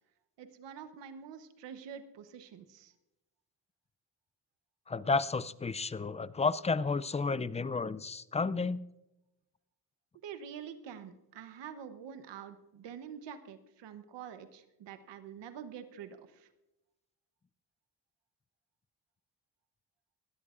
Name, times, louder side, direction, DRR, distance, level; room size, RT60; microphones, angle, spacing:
voice 1, 0.4-2.9 10.2-16.5, right 8 dB, 85° right, 10 dB, 1.0 m, -46 dB
voice 2, 4.9-8.8, left 4 dB, 15° left, 18 dB, 0.3 m, -32 dB
19.5 x 13.5 x 2.5 m, 0.95 s
cardioid pair, 85°, 41 cm